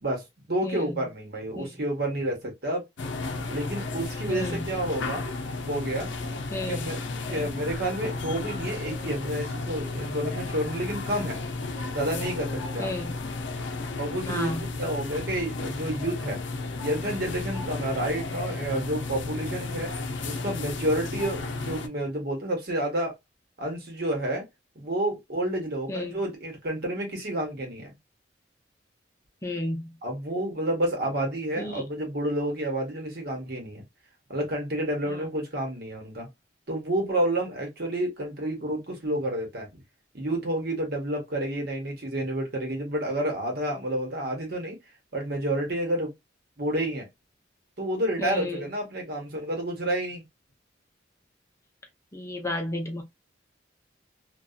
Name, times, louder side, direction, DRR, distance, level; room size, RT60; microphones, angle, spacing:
voice 1, 0.0-2.9 3.5-5.3 5.7-6.1 6.7-7.0 7.3-11.4 11.9-12.9 14.0-16.4 16.8-19.9 20.2-23.2 23.6-24.5 24.7-27.9 30.0-33.8 34.3-36.3 36.7-39.8 40.1-44.8 45.1-46.1 46.6-47.1 47.8-50.2, right 1 dB, 55° right, 1.1 m, -30 dB
voice 2, 0.6-0.9 1.6-1.7 4.3-4.7 6.5-6.8 7.3-7.5 12.8-13.2 14.3-14.7 25.9-26.2 29.4-29.9 31.6-31.8 35.1-35.3 48.2-48.7 52.1-53.0, left 1 dB, 15° left, 0.5 m, -32 dB
sound 1, 3.0-21.9, left 3 dB, 70° left, 0.5 m, -33 dB
2.7 x 2.3 x 2.3 m
head